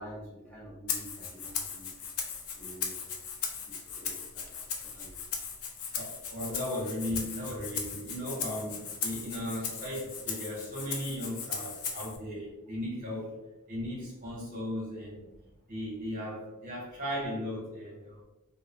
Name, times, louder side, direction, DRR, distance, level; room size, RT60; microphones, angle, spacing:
voice 1, 0.0-1.9 2.5-5.2, equal, 5° left, -8 dB, 0.5 m, -48 dB
Rattle (instrument), 0.9-12.2, left 6 dB, 80° left, 0.5 m, -38 dB
voice 2, 5.9-13.3 13.7-15.3 15.7-18.2, equal, 40° right, -4 dB, 1.0 m, -36 dB
2.9 x 2.0 x 2.8 m, 1.1 s
head